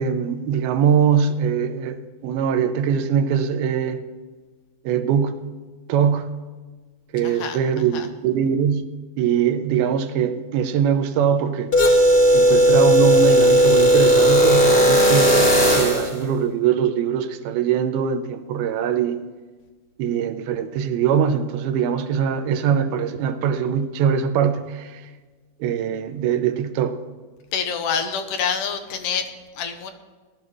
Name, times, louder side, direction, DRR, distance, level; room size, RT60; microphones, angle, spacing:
voice 1, 0.0-4.0 4.9-5.4 5.9-6.3 7.1-8.9 9.2-11.7 12.3-19.2 20.0-25.0 25.6-27.0, right 8 dB, 85° right, 2.7 m, -22 dB
voice 2, 7.2-7.6 7.9-8.1 27.5-29.9, left 6 dB, 75° left, 2.2 m, -27 dB
sound 1, 11.7-16.1, equal, 30° left, 0.9 m, -15 dB
18.5 x 12.0 x 3.1 m
omnidirectional pair, 4.2 m